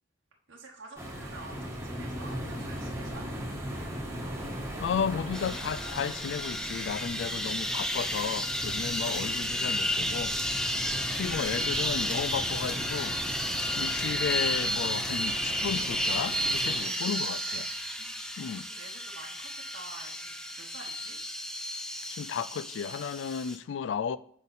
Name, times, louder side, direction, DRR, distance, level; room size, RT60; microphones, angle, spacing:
voice 1, 0.5-3.3 16.9-17.3 17.9-21.2, right 3 dB, 80° right, 1.0 m, -50 dB
sound 1, 1.0-16.9, equal, 15° right, 1.4 m, -39 dB
voice 2, 4.8-10.4 11.0-13.2 13.8-17.7 18.4-18.7 22.1-24.2, left 7 dB, 75° left, 0.3 m, -34 dB
sound 2, 5.3-23.6, equal, 5° left, 0.5 m, -32 dB
7.4 x 5.4 x 4.0 m
head